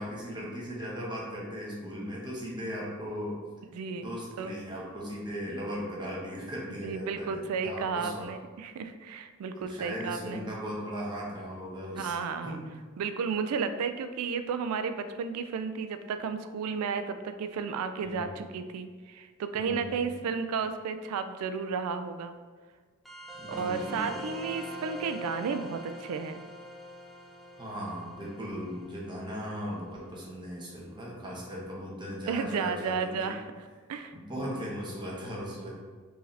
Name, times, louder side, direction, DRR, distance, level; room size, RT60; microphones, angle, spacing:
voice 1, 0.0-3.4 4.0-8.3 9.6-12.1 12.4-12.6 18.0-18.4 19.5-20.2 23.4-24.2 27.6-33.3 34.1-35.8, equal, 20° right, -5 dB, 0.9 m, -38 dB
voice 2, 3.7-4.1 4.4-4.5 6.8-10.5 12.0-12.6 13.0-22.4 23.5-26.4 32.3-33.5 33.9-34.7, right 5 dB, 75° right, 10 dB, 0.3 m, -33 dB
sound 1, 23.0-30.1, equal, ahead, 0.4 m, -44 dB
4.7 x 2.7 x 3.2 m, 1.5 s
head